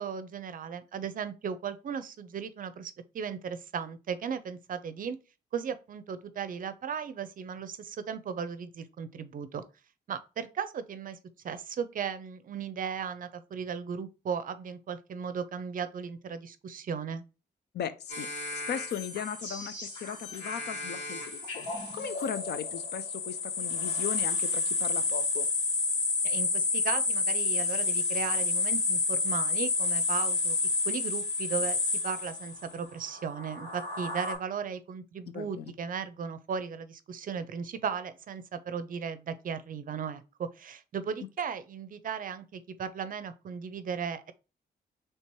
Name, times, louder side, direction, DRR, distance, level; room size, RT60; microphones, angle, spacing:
voice 1, 0.0-5.2 5.5-9.6 10.1-11.2 11.4-17.2 26.2-30.6 30.8-44.3, right 7 dB, 50° right, 0.5 m, -36 dB
voice 2, 17.7-18.3 18.5-25.5 35.3-35.6, left 8 dB, 70° left, 0.5 m, -38 dB
sound 1, 18.1-32.7 33.3-34.3, left 4 dB, 90° left, 2.1 m, -30 dB
3.3 x 2.8 x 4.5 m
cardioid pair, 120°, 18 cm